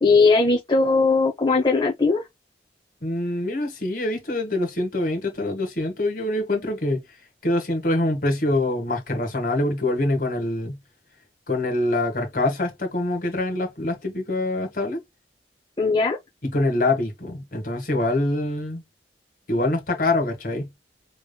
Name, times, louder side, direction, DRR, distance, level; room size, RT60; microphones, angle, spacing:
voice 1, 0.0-2.3 15.8-16.2, left 4 dB, 25° left, 0.8 m, -19 dB
voice 2, 3.0-7.0 7.4-10.8 11.5-15.0 16.5-18.8 19.5-20.7, left 2 dB, 50° left, 1.7 m, -25 dB
5.3 x 3.1 x 2.2 m
head